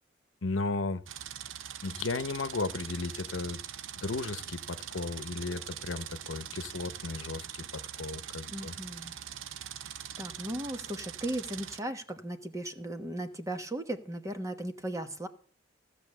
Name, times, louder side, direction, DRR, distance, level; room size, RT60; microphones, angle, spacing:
voice 1, 0.4-1.0 1.8-3.6 4.0-8.7, left 3 dB, 80° left, 12 dB, 0.8 m, -35 dB
sound 1, 1.1-11.8, right 10 dB, 85° right, 0.6 m, -42 dB
voice 2, 8.5-9.1 10.2-15.3, right 1 dB, 15° right, 7 dB, 1.2 m, -37 dB
15.0 x 6.8 x 6.8 m, 0.43 s
head